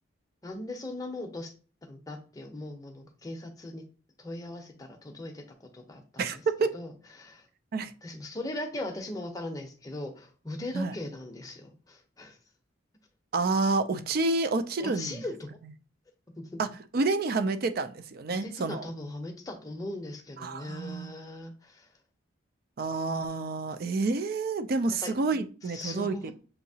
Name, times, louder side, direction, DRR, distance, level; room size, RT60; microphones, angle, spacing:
voice 1, 0.4-1.5 1.8-3.8 4.2-6.2 6.7-7.5 8.0-12.4 14.8-15.6 16.4-16.6 18.3-21.9 24.9-25.1 25.6-26.3, left 1 dB, 15° left, 3 dB, 0.7 m, -39 dB
voice 2, 6.2-6.7 7.7-7.9 10.7-10.9 13.3-15.2 16.6-16.7 16.9-18.8 20.4-21.1 22.8-26.3, right 3 dB, 45° right, 11 dB, 0.4 m, -29 dB
6.6 x 2.8 x 2.7 m, 0.38 s
head